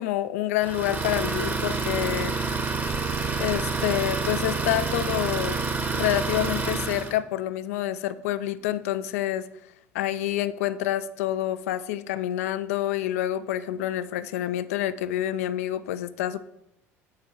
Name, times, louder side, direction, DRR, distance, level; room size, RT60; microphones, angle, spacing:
voice 1, 0.0-2.4 3.4-5.6 5.9-9.5 9.9-16.4, left 13 dB, 70° left, 14 dB, 0.4 m, -28 dB
Idling, 0.6-7.2, right 4 dB, 20° right, 1.0 m, -28 dB
6.6 x 4.4 x 5.5 m, 0.82 s
figure-of-eight pair, 65°, 8 cm